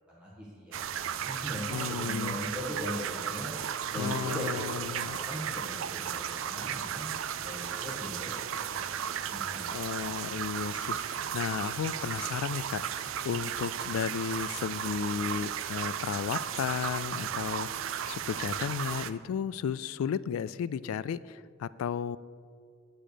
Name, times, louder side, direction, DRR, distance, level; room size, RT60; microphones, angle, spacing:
voice 1, 0.1-0.8 1.2-3.5 3.9-4.7 5.1-7.1 7.4-8.4 8.7-8.8 9.1-9.9 10.8-11.3, equal, 5° right, -8 dB, 1.6 m, -39 dB
sound 1, 0.7-19.1, right 9 dB, 75° right, 0.4 m, -35 dB
voice 2, 1.7-2.4 4.0-5.2 9.7-22.2, left 7 dB, 90° left, 18 dB, 0.3 m, -34 dB
9.1 x 8.8 x 5.0 m, 2.2 s
head